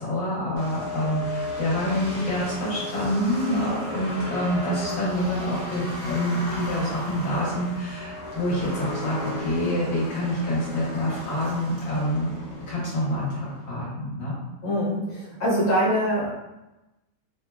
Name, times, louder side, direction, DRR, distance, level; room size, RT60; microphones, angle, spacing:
voice 1, 0.0-12.3 12.7-14.3, equal, 60° left, -8 dB, 1.4 m, -27 dB
sound 1, 0.6-13.6, left 1 dB, 65° right, 0.4 m, -35 dB
voice 2, 14.6-16.3, equal, 30° left, -10 dB, 0.8 m, -24 dB
3.6 x 2.1 x 2.3 m, 1.0 s
omnidirectional pair, 1.9 m